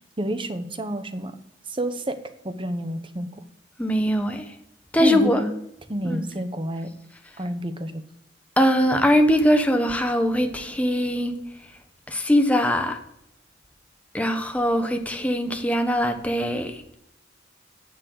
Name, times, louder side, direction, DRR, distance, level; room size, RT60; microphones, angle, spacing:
voice 1, 0.2-1.4 1.7-2.2 2.4-3.3 5.0-5.5 5.9-6.9 7.4-8.0, right 1 dB, 30° right, 9 dB, 1.0 m, -29 dB
voice 2, 3.8-4.5 4.9-5.4 6.0-6.2 8.6-11.3 12.1-13.0 14.1-16.9, equal, 10° left, 5 dB, 1.2 m, -21 dB
10.0 x 7.5 x 8.0 m, 0.75 s
head